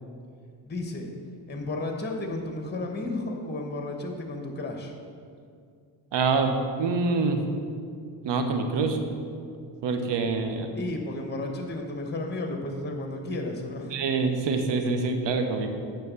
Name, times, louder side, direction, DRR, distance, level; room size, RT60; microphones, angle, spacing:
voice 1, 0.7-1.1 1.5-5.0 10.8-14.0, left 2 dB, 20° left, 3 dB, 1.2 m, -33 dB
voice 2, 6.1-7.4 8.2-9.0 9.8-10.7 13.9-15.8, right 4 dB, 65° right, 6 dB, 1.0 m, -26 dB
8.6 x 4.0 x 6.9 m, 2.4 s
supercardioid pair, 55°, 47 cm